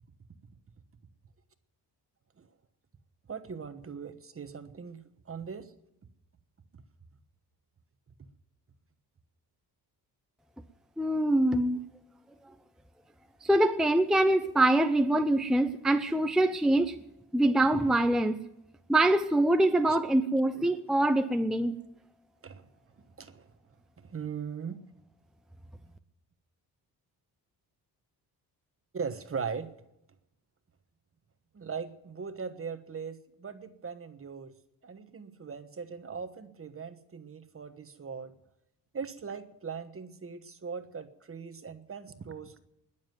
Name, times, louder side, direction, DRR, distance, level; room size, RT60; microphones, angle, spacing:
voice 1, 3.3-5.7 15.6-15.7 19.9-20.1 22.4-22.6 23.0-23.5 24.0-24.8 28.9-29.7 31.5-34.5 34.8-38.3 38.9-42.6, right 6 dB, 35° right, 10 dB, 1.2 m, -40 dB
voice 2, 11.0-11.8 13.4-17.0 17.3-18.4 18.9-21.7, right 1 dB, ahead, 8 dB, 0.6 m, -24 dB
20.5 x 7.4 x 9.3 m, 0.85 s
cardioid pair, 120°, 40 cm